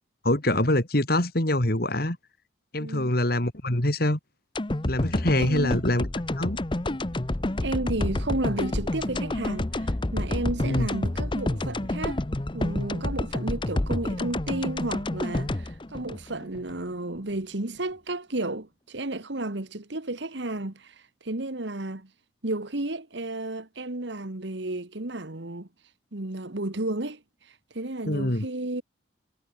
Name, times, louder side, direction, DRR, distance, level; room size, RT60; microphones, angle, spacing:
voice 1, 0.2-2.2 2.7-4.2 4.8-6.1 6.4-6.6 10.6-10.9 28.0-28.5, left 1 dB, 50° left, 2.8 m, -24 dB
voice 2, 2.8-3.1 5.4-5.8 7.6-12.2 12.5-22.1 22.4-25.7 26.1-28.8, right 2 dB, 65° right, 1.6 m, -32 dB
sound 1, 4.5-16.8 17.1-17.2, left 1 dB, 25° left, 0.8 m, -29 dB
head